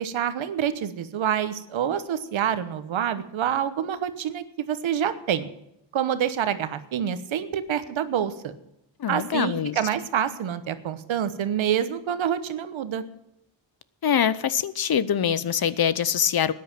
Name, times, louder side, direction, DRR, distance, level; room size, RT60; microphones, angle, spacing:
voice 1, 0.0-5.5 5.9-8.5 9.1-13.1, right 9 dB, 90° right, 12 dB, 1.2 m, -27 dB
voice 2, 9.0-9.8 14.0-16.5, left 8 dB, 50° left, 17 dB, 0.8 m, -24 dB
13.0 x 9.8 x 6.0 m, 0.83 s
cardioid pair, 85°, 46 cm